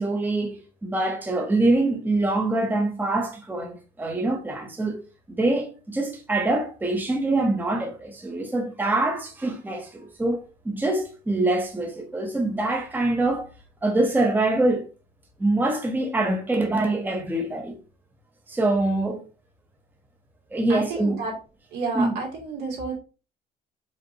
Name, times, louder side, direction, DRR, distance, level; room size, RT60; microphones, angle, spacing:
voice 1, 0.0-5.0 5.3-13.5 13.8-14.9 15.4-17.7 18.5-19.3 20.5-21.2 21.9-22.2, right 2 dB, 10° right, 0.8 m, -24 dB
voice 2, 20.7-21.3 21.7-22.9, right 3 dB, 80° right, 2.1 m, -30 dB
5.0 x 2.5 x 2.9 m
cardioid pair, 110°, 17 cm